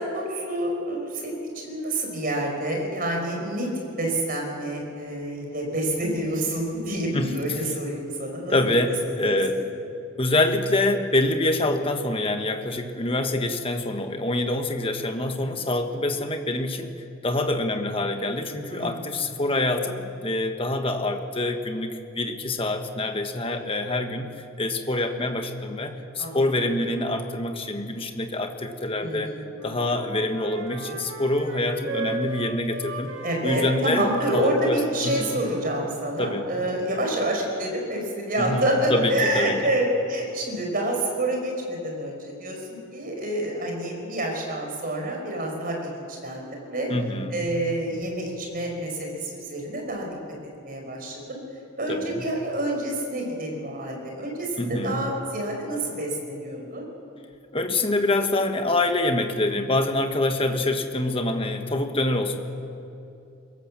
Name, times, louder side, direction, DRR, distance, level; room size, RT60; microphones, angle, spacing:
voice 1, 0.0-3.7 4.0-8.7 9.2-9.4 18.7-19.0 26.2-26.5 29.0-29.5 33.2-42.6 42.9-46.9 47.3-50.1 50.6-51.4 51.8-56.8, right 1 dB, 45° right, 1 dB, 4.8 m, -28 dB
voice 2, 7.1-7.7 8.5-9.6 10.2-16.9 17.2-29.3 29.6-33.1 33.4-35.4 36.2-36.5 38.4-39.6 46.9-47.5 51.9-52.2 54.6-55.0 57.5-62.4, left 2 dB, 25° left, 6 dB, 1.3 m, -26 dB
Wind instrument woodwind instrument, 29.5-35.8, right 3 dB, 80° right, 3.1 m, -36 dB
22.5 x 17.5 x 7.4 m, 2.8 s
head